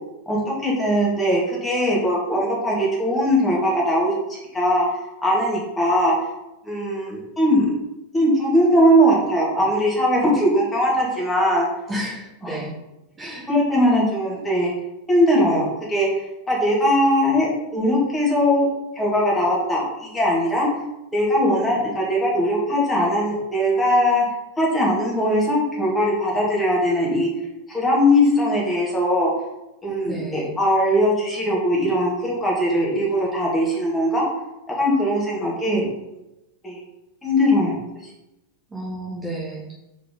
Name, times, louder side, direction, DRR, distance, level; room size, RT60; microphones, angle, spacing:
voice 1, 0.3-4.9 5.2-6.2 6.7-7.7 8.1-11.7 12.4-12.6 13.5-14.7 15.1-16.1 16.5-18.7 19.0-20.7 21.1-24.2 24.6-27.3 27.7-29.3 29.8-34.3 34.8-35.9 36.6-36.8 37.2-37.7, equal, 10° left, -4 dB, 2.2 m, -20 dB
voice 2, 11.9-12.7 13.2-13.5 30.0-30.6 38.7-39.7, right 1 dB, 15° right, -5 dB, 1.4 m, -31 dB
4.5 x 4.2 x 5.1 m, 0.91 s
figure-of-eight pair, 90°, 0 cm